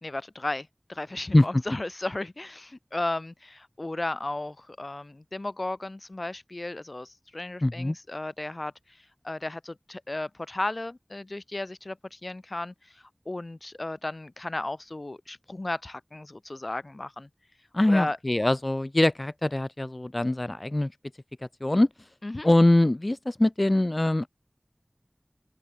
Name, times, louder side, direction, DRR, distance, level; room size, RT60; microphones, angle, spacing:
voice 1, 0.0-8.7 9.0-17.3 17.9-18.2 22.2-22.5, left 2 dB, 65° left, 6.0 m, -35 dB
voice 2, 7.6-7.9 17.7-20.9 21.6-21.9 22.4-24.3, left 1 dB, 45° left, 4.8 m, -23 dB
open air
wide cardioid pair, 40°, 0 cm